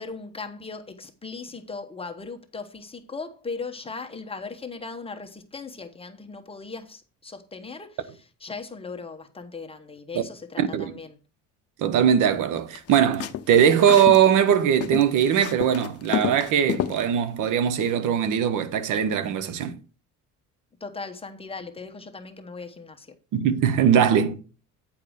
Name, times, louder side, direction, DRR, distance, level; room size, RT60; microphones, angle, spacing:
voice 1, 0.0-11.2 20.8-23.1, left 4 dB, 15° left, 1.0 m, -38 dB
voice 2, 10.6-10.9 11.8-19.8 23.3-24.4, right 8 dB, 70° right, 1.0 m, -20 dB
sound 1, 12.7-14.2 14.5-17.0, left 11 dB, 50° left, 0.7 m, -30 dB
9.1 x 4.7 x 4.9 m
cardioid pair, 125°, 32 cm